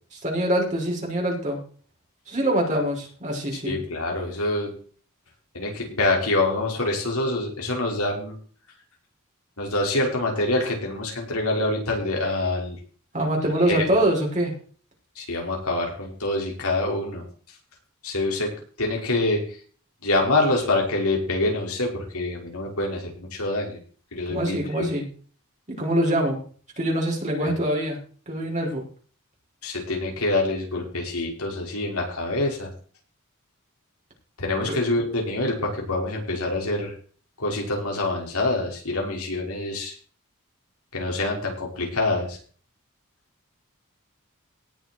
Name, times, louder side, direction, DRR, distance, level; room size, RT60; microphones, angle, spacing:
voice 1, 0.1-1.6 2.3-3.8 13.1-14.5 24.3-25.1 25.7-26.4 26.8-28.0 28.3-28.8 34.6-34.8, right 1 dB, 35° right, -1 dB, 6.4 m, -24 dB
voice 2, 3.5-4.7 5.5-8.4 9.6-12.8 13.7-13.8 15.2-17.2 18.0-18.5 18.8-19.4 20.0-23.8 24.1-24.9 27.4-27.5 29.6-32.7 34.4-36.9 37.4-39.9 40.9-42.4, left 2 dB, 85° left, 0 dB, 5.6 m, -26 dB
18.5 x 7.5 x 4.7 m, 0.42 s
head